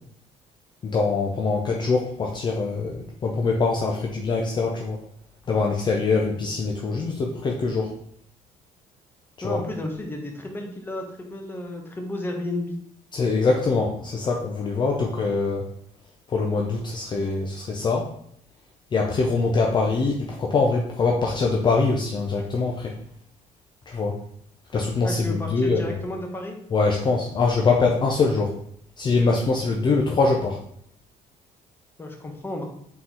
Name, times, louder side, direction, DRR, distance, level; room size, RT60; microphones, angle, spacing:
voice 1, 0.8-5.0 5.5-7.9 9.4-9.6 13.1-15.6 16.3-18.1 18.9-22.9 23.9-24.2 24.7-26.0 26.7-28.6 29.0-30.6, left 4 dB, 35° left, 0 dB, 0.5 m, -23 dB
voice 2, 9.4-12.8 25.0-26.6 32.0-32.7, left 1 dB, 15° left, 2 dB, 0.8 m, -32 dB
3.9 x 3.8 x 2.9 m, 0.69 s
cardioid pair, 105°, 14 cm